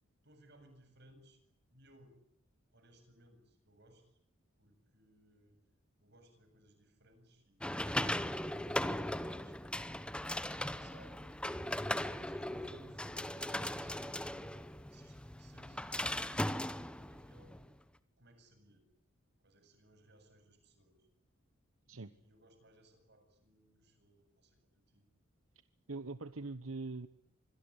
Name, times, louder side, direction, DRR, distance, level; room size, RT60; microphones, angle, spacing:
voice 1, 0.2-1.4 1.7-2.2 2.7-4.2 4.6-5.6 6.0-9.7 10.0-11.4 12.2-14.4 14.9-17.6 18.2-18.9 19.4-21.1 21.8-25.0, right 1 dB, 55° right, 7 dB, 7.8 m, -64 dB
sound 1, 7.6-17.6, left 1 dB, 5° left, 1.0 m, -38 dB
voice 2, 25.9-27.1, right 3 dB, 80° right, 13 dB, 1.1 m, -42 dB
26.0 x 22.0 x 10.0 m, 0.73 s
head